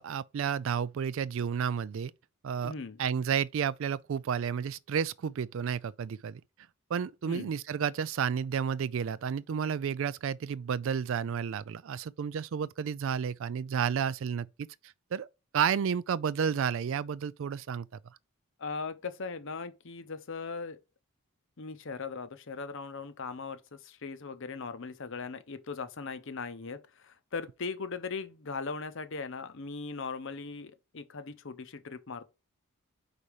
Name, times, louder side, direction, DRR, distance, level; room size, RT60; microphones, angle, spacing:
voice 1, 0.0-2.1 2.4-2.7 3.0-6.4 6.9-14.5 15.1-15.3 15.5-17.9, right 7 dB, 60° right, 0.3 m, -31 dB
voice 2, 2.6-3.0 7.2-7.5 18.6-20.8 21.6-32.3, left 4 dB, 60° left, 0.7 m, -39 dB
5.1 x 4.1 x 4.7 m
head